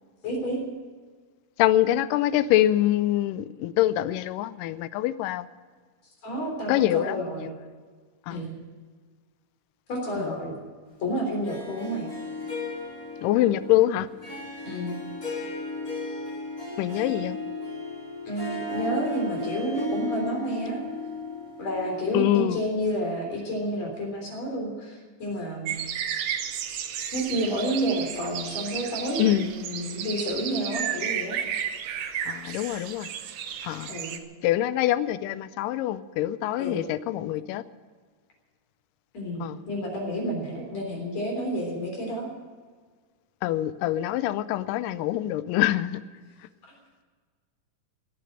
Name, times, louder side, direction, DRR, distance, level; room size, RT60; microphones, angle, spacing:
voice 1, 0.2-0.6 6.2-7.5 8.3-8.6 9.9-10.6 11.0-12.1 14.6-14.9 18.3-20.8 21.6-25.8 27.1-31.4 33.9-34.2 36.6-36.9 39.1-42.3, right 1 dB, 50° left, 1 dB, 4.6 m, -30 dB
voice 2, 1.6-5.5 6.7-7.2 8.3-8.4 10.2-10.3 13.2-14.1 16.8-17.4 22.1-22.6 29.2-29.5 32.3-33.1 33.6-33.9 34.4-37.6 39.4-39.6 43.4-46.0, left 14 dB, 80° left, 15 dB, 2.2 m, -24 dB
Harp, 11.4-22.6, left 3 dB, 25° left, 5.8 m, -35 dB
sound 1, 25.7-34.2, right 9 dB, 65° right, 1.7 m, -33 dB
17.5 x 8.4 x 8.9 m, 1.5 s
omnidirectional pair, 3.9 m